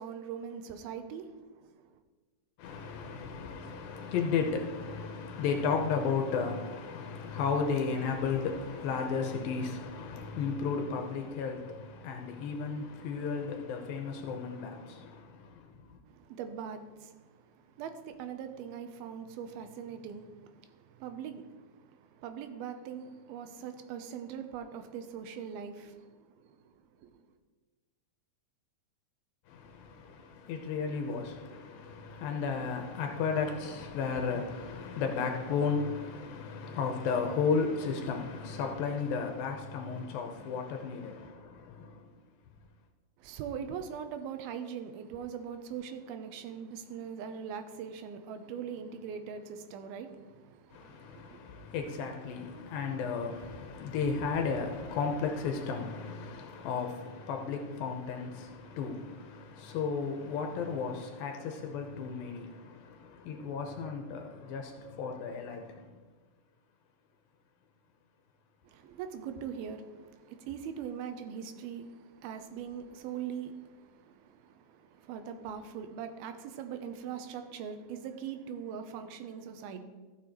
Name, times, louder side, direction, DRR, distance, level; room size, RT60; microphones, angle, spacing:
voice 1, 0.0-2.0 16.1-27.3 43.2-51.4 68.6-79.8, right 7 dB, 90° right, 2.7 m, -42 dB
voice 2, 2.6-15.9 29.5-42.1 50.7-65.9, left 5 dB, 85° left, 2.5 m, -34 dB
15.0 x 6.8 x 3.0 m
omnidirectional pair, 4.2 m